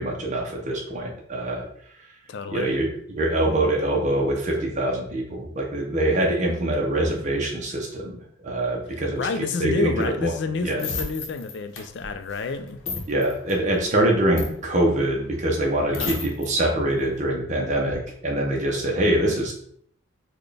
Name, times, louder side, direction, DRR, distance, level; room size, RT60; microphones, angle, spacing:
voice 1, 0.0-1.6 2.5-8.2 8.4-10.3 10.6-10.8 13.1-19.5, right 1 dB, 35° right, -1 dB, 0.6 m, -24 dB
voice 2, 2.3-2.7 8.9-12.8 15.9-16.1, left 4 dB, 60° left, 8 dB, 0.4 m, -29 dB
sound 1, 9.8-16.5 16.9-17.2, left 4 dB, 85° left, 0.7 m, -35 dB
4.1 x 2.2 x 3.3 m, 0.64 s
head